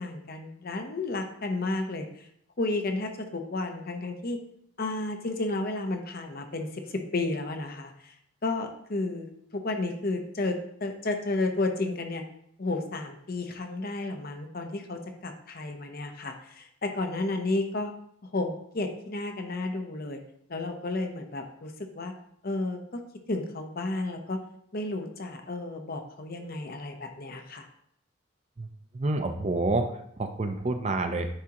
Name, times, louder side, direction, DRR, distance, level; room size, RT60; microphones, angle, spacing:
voice 1, 0.0-2.3 2.6-4.4 4.8-8.1 8.4-12.2 12.6-17.9 18.2-20.2 20.5-22.1 22.4-23.0 23.3-24.4 24.7-27.7, left 2 dB, 45° left, 5 dB, 0.7 m, -32 dB
voice 2, 28.6-29.9 30.2-31.3, right 2 dB, 30° right, 7 dB, 0.5 m, -28 dB
9.7 x 3.6 x 2.9 m, 0.71 s
head